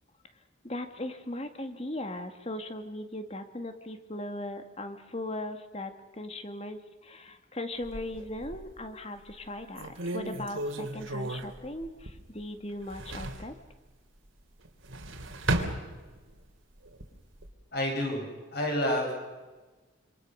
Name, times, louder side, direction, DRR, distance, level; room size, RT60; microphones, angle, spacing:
voice 1, 0.6-13.5, left 1 dB, 30° left, 8 dB, 2.0 m, -38 dB
sound 1, 7.8-8.8 9.3-9.4 9.8-12.4 12.7-13.5 14.7-16.4 16.9-17.5, right 1 dB, 80° right, 3.2 m, -34 dB
voice 2, 17.7-18.3 18.5-19.1, left 1 dB, 50° left, 1 dB, 7.7 m, -28 dB
27.0 x 25.5 x 6.5 m, 1.3 s
head